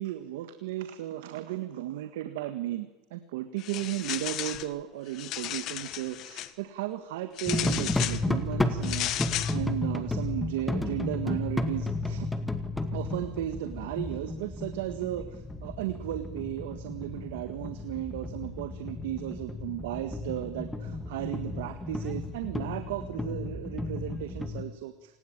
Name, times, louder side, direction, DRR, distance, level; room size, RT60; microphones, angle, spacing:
voice 1, 0.0-12.3 12.9-25.2, right 13 dB, 85° right, 9 dB, 1.7 m, -35 dB
sound 1, 3.6-4.7 5.1-6.5 7.4-8.2 8.8-9.6, left 13 dB, 50° left, 1.4 m, -34 dB
sound 2, 7.5-24.6, left 2 dB, 5° left, 2.1 m, -33 dB
28.0 x 19.5 x 9.0 m, 1.1 s
supercardioid pair, 135°, 0 cm